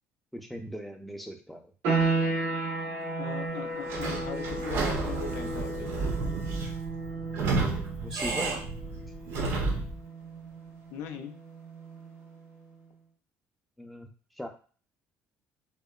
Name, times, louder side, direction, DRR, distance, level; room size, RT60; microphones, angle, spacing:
voice 1, 0.3-1.7 8.0-8.5 13.8-14.5, equal, ahead, 3 dB, 0.3 m, -39 dB
sound 1, 1.8-12.3, right 3 dB, 85° right, 1.0 m, -34 dB
voice 2, 3.2-6.1 10.9-11.3, left 7 dB, 85° left, 6 dB, 0.4 m, -40 dB
Sliding door / Squeak, 3.9-10.0, right 3 dB, 60° right, 0.5 m, -31 dB
2.8 x 2.0 x 2.2 m, 0.40 s
cardioid pair, 145°, 5 cm